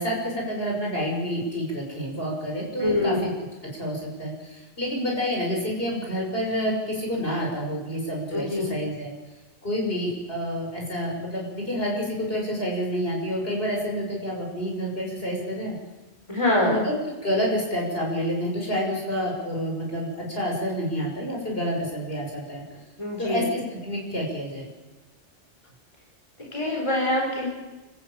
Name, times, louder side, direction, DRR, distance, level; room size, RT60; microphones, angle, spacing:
voice 1, 0.0-3.2 3.6-9.1 9.6-15.7 16.6-16.9 17.2-22.6 23.2-24.7, equal, 55° left, -1 dB, 6.9 m, -28 dB
voice 2, 2.8-3.3 8.3-8.8 16.3-16.9 23.0-23.5 26.4-27.5, left 1 dB, 25° left, -1 dB, 4.4 m, -25 dB
27.0 x 14.5 x 9.0 m, 1.1 s
omnidirectional pair, 1.2 m